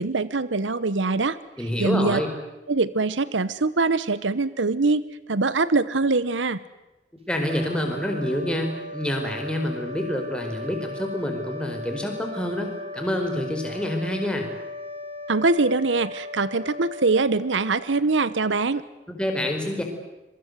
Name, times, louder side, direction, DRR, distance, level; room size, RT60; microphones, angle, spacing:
voice 1, 0.0-1.4 1.8-2.2 2.7-6.6 15.3-18.8, right 3 dB, 90° right, 16 dB, 1.0 m, -23 dB
voice 2, 1.6-2.3 7.3-12.7 12.9-14.5 19.1-19.8, left 1 dB, 5° left, 3 dB, 4.5 m, -27 dB
sound 1, 7.4-18.0, left 2 dB, 30° right, 3.5 m, -37 dB
26.5 x 23.0 x 8.1 m, 1.0 s
head